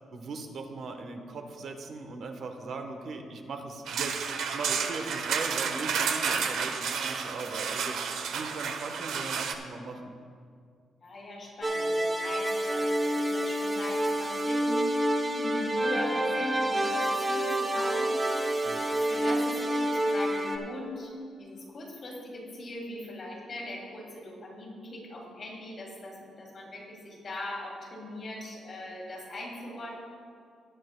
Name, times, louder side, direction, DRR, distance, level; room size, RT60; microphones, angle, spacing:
voice 1, 0.1-8.0 8.3-10.2 18.6-18.9, right 3 dB, 50° right, 4 dB, 1.0 m, -39 dB
sound 1, 3.9-9.5, right 6 dB, 90° right, 0.8 m, -31 dB
voice 2, 11.0-17.0 17.3-18.7 19.0-21.1 21.4-29.9, left 1 dB, 35° left, -3 dB, 2.7 m, -40 dB
sound 2, 11.6-20.6, right 1 dB, 15° right, 0.8 m, -28 dB
18.5 x 10.5 x 2.2 m, 2.2 s
cardioid pair, 175°, 0 cm